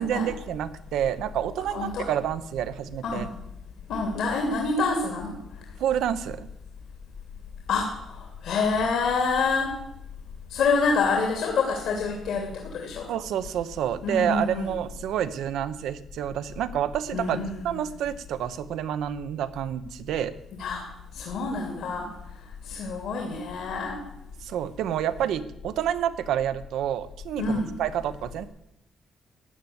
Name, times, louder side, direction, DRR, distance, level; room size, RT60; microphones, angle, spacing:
voice 1, 0.0-3.3 5.8-6.5 13.1-17.4 17.6-20.3 24.4-28.5, right 10 dB, 80° right, 13 dB, 0.9 m, -28 dB
voice 2, 1.7-2.1 3.0-3.3 3.9-5.4 7.7-9.7 10.5-13.1 14.0-14.7 17.1-17.8 20.5-20.8 21.1-22.1 22.6-24.0 27.4-27.7, left 4 dB, 75° left, 1 dB, 2.7 m, -27 dB
15.0 x 9.4 x 7.1 m, 0.85 s
cardioid pair, 90°, 0 cm